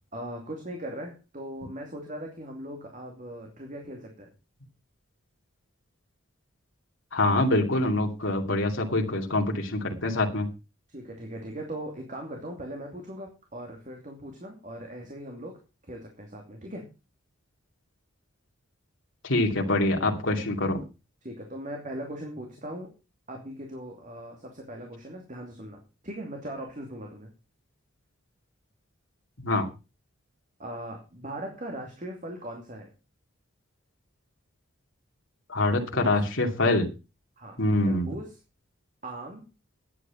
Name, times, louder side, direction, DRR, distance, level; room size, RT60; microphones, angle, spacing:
voice 1, 0.1-4.3 10.9-16.9 21.2-22.9 23.3-27.3 30.6-32.9 35.7-36.1 37.4-37.6 37.9-38.4 39.0-39.5, right 1 dB, 40° right, 2 dB, 2.7 m, -39 dB
voice 2, 7.1-10.5 19.2-20.8 29.4-29.7 35.5-36.9 37.6-38.1, left 2 dB, 65° left, 1 dB, 2.6 m, -25 dB
11.5 x 9.1 x 5.7 m, 0.30 s
head